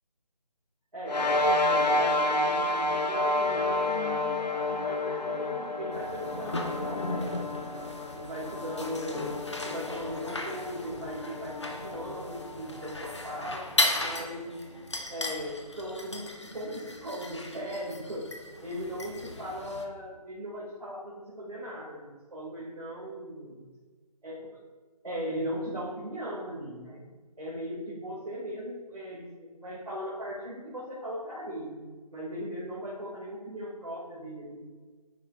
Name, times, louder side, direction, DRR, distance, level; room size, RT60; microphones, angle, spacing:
voice 1, 0.9-7.6 8.1-9.4 9.6-13.7 14.0-14.6 15.1-18.3 18.6-23.6 24.2-24.5 25.0-27.0 27.4-31.8 32.1-34.6, equal, 70° right, -7 dB, 2.0 m, -38 dB
sound 1, 1.1-13.8, left 2 dB, 90° left, 0.8 m, -30 dB
sound 2, 5.9-19.9, left 2 dB, 45° left, 0.8 m, -36 dB
9.1 x 7.0 x 2.4 m, 1.4 s
figure-of-eight pair, 180°, 21 cm